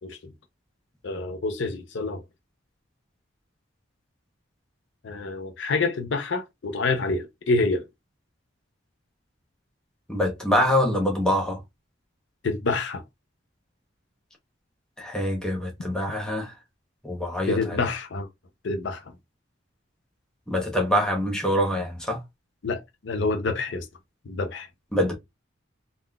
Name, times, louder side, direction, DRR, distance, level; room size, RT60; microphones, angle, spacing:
voice 1, 0.0-0.3 1.0-2.2 5.0-7.9 12.4-13.0 17.5-18.3 18.6-19.0 22.6-23.9 24.3-24.7, left 3 dB, 65° left, 0.5 m, -27 dB
voice 2, 10.1-11.6 15.0-16.5 17.0-17.9 20.5-22.2 24.9-25.1, equal, 5° left, 0.8 m, -25 dB
3.6 x 2.4 x 2.2 m
head